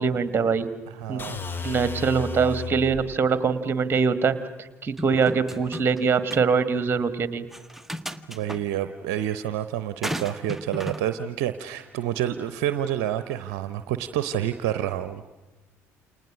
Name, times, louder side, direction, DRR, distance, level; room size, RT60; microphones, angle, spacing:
voice 1, 0.0-0.7 1.1-1.2 1.6-4.4 4.8-7.5, right 5 dB, 30° right, 13 dB, 1.9 m, -23 dB
voice 2, 0.9-1.4 8.3-15.2, right 11 dB, 60° right, 11 dB, 0.8 m, -28 dB
sound 1, 1.2-3.1, left 4 dB, 30° left, 2.2 m, -33 dB
sound 2, 5.0-6.0 6.3-6.4 7.5-8.6 10.0-11.0, equal, 5° right, 1.3 m, -34 dB
29.0 x 28.5 x 6.4 m, 1.2 s
figure-of-eight pair, 55°, 8 cm